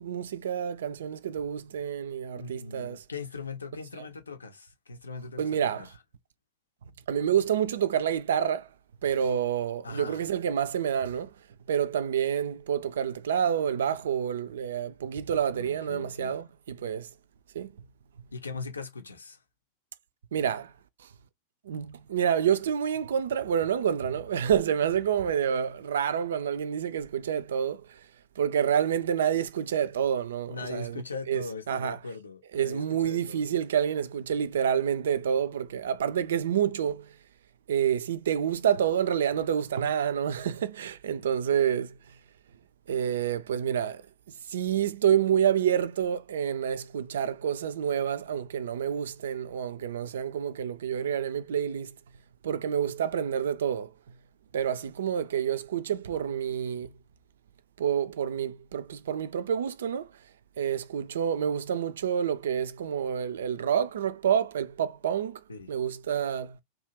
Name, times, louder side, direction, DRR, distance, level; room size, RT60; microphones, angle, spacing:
voice 1, 0.0-3.0 5.4-5.9 7.1-8.7 9.0-11.3 11.7-17.1 17.5-17.7 20.3-20.7 21.7-27.8 28.4-31.0 31.3-32.0 32.5-37.1 37.7-41.9 42.9-44.0 44.5-51.9 52.4-53.9 54.5-56.9 57.8-60.1 60.6-65.4 65.7-66.6, right 8 dB, 65° right, 0.3 m, -28 dB
voice 2, 2.3-5.9 9.8-10.2 15.5-16.4 18.3-19.4 30.5-33.5 65.5-65.7, left 4 dB, 75° left, 0.6 m, -40 dB
2.7 x 2.4 x 2.8 m
figure-of-eight pair, 90°, 0 cm